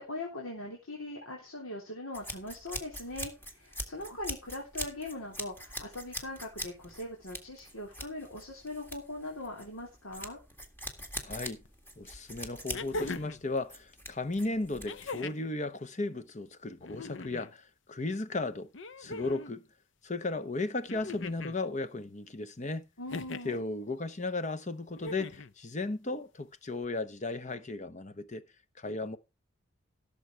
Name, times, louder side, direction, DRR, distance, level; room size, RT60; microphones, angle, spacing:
voice 1, 0.0-10.4 23.0-23.7, left 1 dB, 75° left, 3.3 m, -41 dB
sound 1, 2.1-15.3, equal, 10° left, 1.9 m, -43 dB
voice 2, 11.2-11.6 12.0-18.7 19.0-19.7 20.0-22.8 23.4-28.4 28.8-29.2, left 2 dB, 35° left, 0.9 m, -35 dB
sound 2, 11.6-11.7 12.7-13.4 14.8-15.5 16.8-17.5 18.7-19.5 20.9-21.6 23.1-23.6 24.9-25.5 26.8-26.9, left 3 dB, 60° left, 0.7 m, -40 dB
16.5 x 7.0 x 4.5 m
head